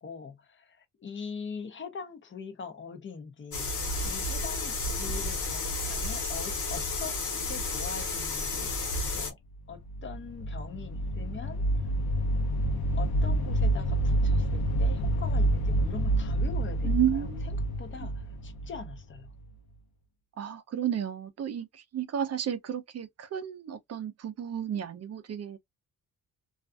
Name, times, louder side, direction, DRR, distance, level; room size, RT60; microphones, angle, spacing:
voice 1, 0.0-3.7 4.0-7.2 7.4-9.4 9.7-11.6 13.0-19.3, left 5 dB, 35° left, 0.6 m, -42 dB
sound 1, 3.5-9.3, left 2 dB, 55° left, 1.2 m, -32 dB
sound 2, 9.7-19.5, right 1 dB, 85° left, 0.7 m, -28 dB
voice 2, 16.8-17.4 20.4-25.6, right 10 dB, 45° right, 0.5 m, -32 dB
2.4 x 2.3 x 2.4 m
wide cardioid pair, 165°, 36 cm